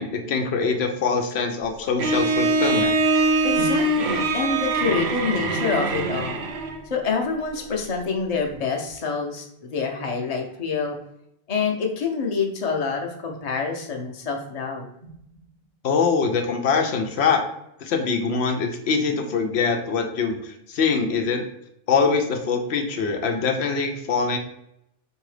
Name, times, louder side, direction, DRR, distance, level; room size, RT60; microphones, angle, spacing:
voice 1, 0.0-3.0 15.8-17.4 17.8-21.4 21.9-24.4, left 5 dB, 80° left, 4 dB, 0.9 m, -23 dB
Bowed string instrument, 2.0-6.9, right 2 dB, 85° right, 0.9 m, -23 dB
voice 2, 3.4-6.4 6.9-11.0 11.5-15.1, left 5 dB, 40° left, 1 dB, 0.7 m, -27 dB
3.7 x 2.8 x 4.8 m, 0.77 s
omnidirectional pair, 1.1 m